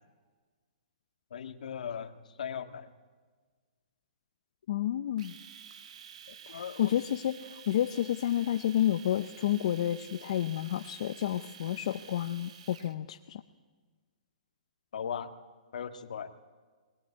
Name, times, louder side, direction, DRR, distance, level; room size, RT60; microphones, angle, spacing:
voice 1, 1.3-2.9 6.3-6.9 14.9-15.3 15.7-16.3, left 7 dB, 65° left, 8 dB, 1.8 m, -38 dB
voice 2, 4.7-5.3 6.5-13.4, left 11 dB, 45° left, 7 dB, 0.7 m, -30 dB
Domestic sounds home sounds, 5.2-12.9, right 8 dB, 50° right, 1.5 m, -51 dB
22.0 x 19.0 x 9.7 m, 1.5 s
hypercardioid pair, 170°, 4 cm